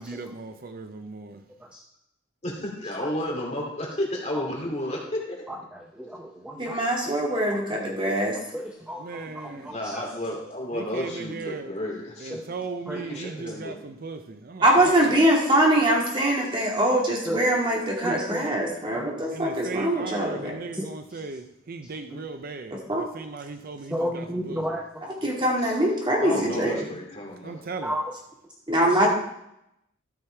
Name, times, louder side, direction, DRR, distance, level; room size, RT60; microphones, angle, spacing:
voice 1, 0.0-1.4 9.0-9.7 10.7-11.7 12.2-15.2 19.3-24.6 27.4-27.9, right 4 dB, 50° right, 8 dB, 0.6 m, -37 dB
voice 2, 2.4-5.4 9.7-12.4 12.9-13.8 25.6-25.7 26.2-27.6, left 1 dB, 35° left, -1 dB, 2.6 m, -32 dB
voice 3, 5.5-7.2 7.9-8.2 8.5-10.0 12.3-12.4 12.9-13.2 17.2-17.4 18.0-18.5 18.9-19.3 20.8-21.2 23.9-24.9 27.8-28.1 28.9-29.0, equal, 5° right, 1 dB, 0.8 m, -33 dB
voice 4, 6.6-8.3 14.6-20.6 22.9-23.0 25.2-26.9 28.7-29.1, right 1 dB, 25° right, -2 dB, 2.3 m, -23 dB
13.0 x 6.4 x 4.5 m, 0.82 s
head